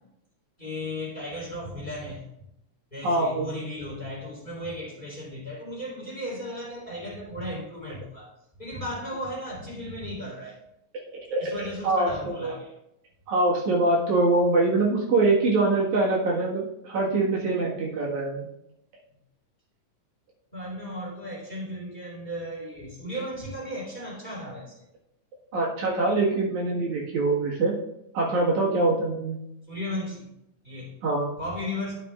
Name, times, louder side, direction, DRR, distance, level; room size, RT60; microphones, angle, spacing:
voice 1, 0.6-2.5 2.9-8.3 8.6-10.6 11.4-12.8 20.5-24.8 29.7-30.3 30.6-31.0 31.4-31.9, left 1 dB, 15° left, -6 dB, 3.6 m, -35 dB
voice 2, 3.0-3.6 11.1-11.5 11.8-12.5 13.3-18.5 25.5-27.8 28.1-29.4 31.0-31.3, right 2 dB, 70° right, -5 dB, 3.0 m, -24 dB
12.5 x 7.1 x 2.4 m, 0.82 s
omnidirectional pair, 3.5 m